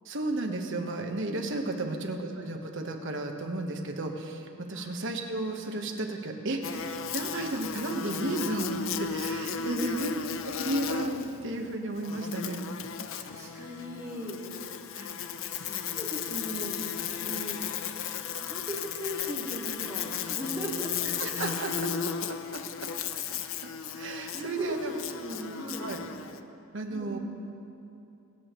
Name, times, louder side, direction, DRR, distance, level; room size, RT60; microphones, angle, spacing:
voice 1, 0.0-10.1 10.6-12.6 21.0-21.9 22.3-22.6 23.3-23.7 24.0-24.9 25.8-26.0 26.7-27.2, right 2 dB, 60° right, 3 dB, 1.1 m, -33 dB
Buzz, 6.6-26.4, left 7 dB, 60° left, 0.5 m, -35 dB
voice 2, 9.6-9.9 13.1-14.4 14.9-15.1 15.6-16.8 17.2-17.6 18.3-21.1 24.3-25.9 26.9-27.2, equal, 15° right, -5 dB, 2.0 m, -38 dB
23.5 x 8.4 x 3.1 m, 2.7 s
head